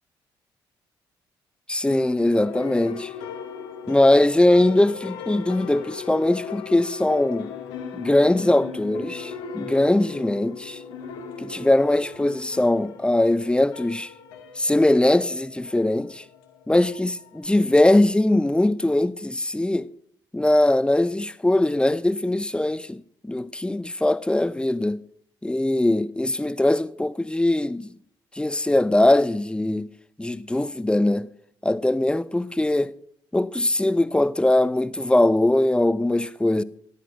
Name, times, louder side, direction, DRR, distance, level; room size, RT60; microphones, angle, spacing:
voice 1, 1.7-3.1 3.9-7.5 7.9-10.8 11.4-14.1 14.6-16.2 16.7-19.9 20.3-25.0 25.4-27.9 28.4-29.9 30.2-31.3 31.6-33.0 33.3-36.6, left 1 dB, 10° left, 0.5 m, -21 dB
sound 1, 1.9-17.5, left 6 dB, 85° left, 0.9 m, -38 dB
13.5 x 10.5 x 2.5 m
hypercardioid pair, 50°, 11 cm